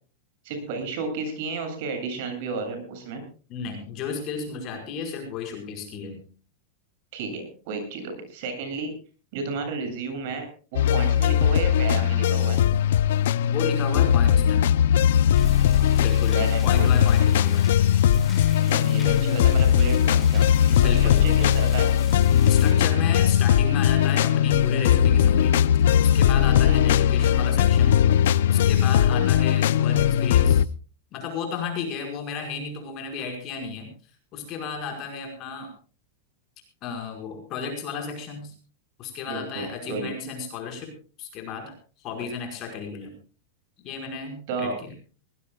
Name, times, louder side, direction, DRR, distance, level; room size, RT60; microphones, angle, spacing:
voice 1, 0.4-3.2 7.1-8.9 9.3-10.5 10.7-12.6 16.3-16.9 18.7-21.9 26.6-26.8 39.3-40.1 44.5-44.8, right 4 dB, 50° right, 6 dB, 7.7 m, -32 dB
voice 2, 3.5-6.2 13.5-14.7 16.0-17.7 20.7-21.3 22.5-28.0 28.5-30.6 31.1-35.7 36.8-38.5 39.0-43.2 43.8-44.9, left 5 dB, 30° left, 4 dB, 5.4 m, -33 dB
sound 1, 10.7-30.6, left 9 dB, 70° left, 0.6 m, -19 dB
sound 2, 15.3-22.7, left 4 dB, 10° left, 5.5 m, -43 dB
23.0 x 19.0 x 2.4 m, 0.37 s
supercardioid pair, 165°, 0 cm